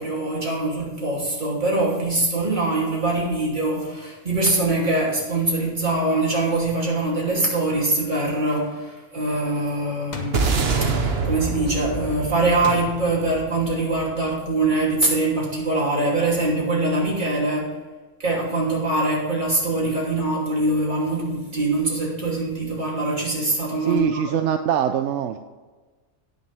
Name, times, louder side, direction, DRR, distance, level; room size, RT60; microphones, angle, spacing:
voice 1, 0.0-10.5 10.9-17.7 18.2-24.4, right 2 dB, 40° right, -4 dB, 3.1 m, -23 dB
sound 1, 10.1-10.6 12.6-13.3, left 1 dB, 40° left, 1.2 m, -35 dB
sound 2, 10.3-14.8, right 4 dB, 60° right, 1.3 m, -26 dB
voice 2, 23.8-25.4, right 10 dB, 80° right, 7 dB, 0.9 m, -23 dB
18.0 x 6.6 x 3.4 m, 1.3 s
omnidirectional pair, 1.2 m